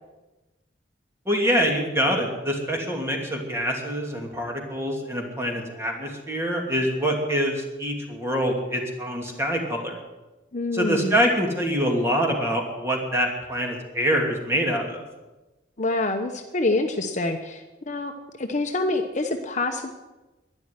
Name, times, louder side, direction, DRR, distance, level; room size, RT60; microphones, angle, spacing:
voice 1, 1.3-10.0 10.7-15.0, equal, 15° right, 1 dB, 2.7 m, -25 dB
voice 2, 10.5-11.2 15.8-19.9, left 2 dB, 40° left, 5 dB, 1.0 m, -26 dB
12.0 x 11.0 x 9.6 m, 1.1 s
head